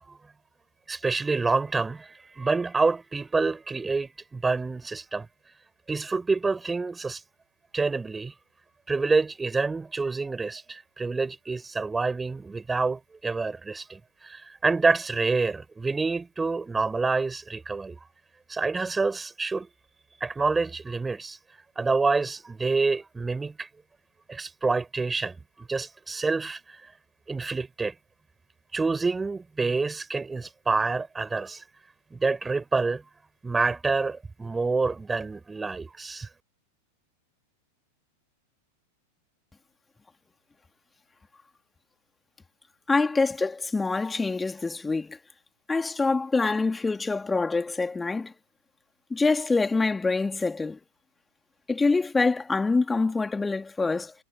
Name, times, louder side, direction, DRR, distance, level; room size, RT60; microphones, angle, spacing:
voice 1, 0.9-5.3 5.9-7.2 7.7-8.3 8.9-18.0 18.5-19.7 20.2-21.4 21.8-23.7 24.3-26.6 27.3-27.9 28.7-31.6 32.1-33.0 33.4-36.3, right 4 dB, 10° right, 7.0 m, -27 dB
voice 2, 42.9-45.2 45.7-48.3 49.1-50.8 51.7-54.1, left 3 dB, 10° left, 3.0 m, -25 dB
figure-of-eight pair, 90°, 0 cm